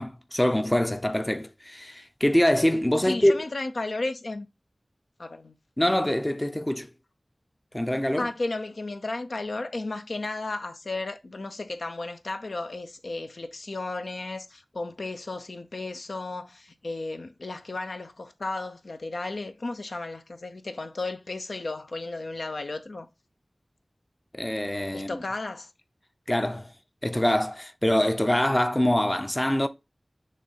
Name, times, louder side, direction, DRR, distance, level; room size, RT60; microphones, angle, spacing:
voice 1, 0.0-3.4 5.8-6.9 7.7-8.3 24.3-25.2 26.3-26.7 27.0-29.7, left 1 dB, 20° left, 0.5 m, -24 dB
voice 2, 3.0-4.5 5.2-5.5 8.2-23.1 24.9-25.7, left 2 dB, 85° left, 0.7 m, -34 dB
6.5 x 2.6 x 5.6 m
wide cardioid pair, 65°, 0 cm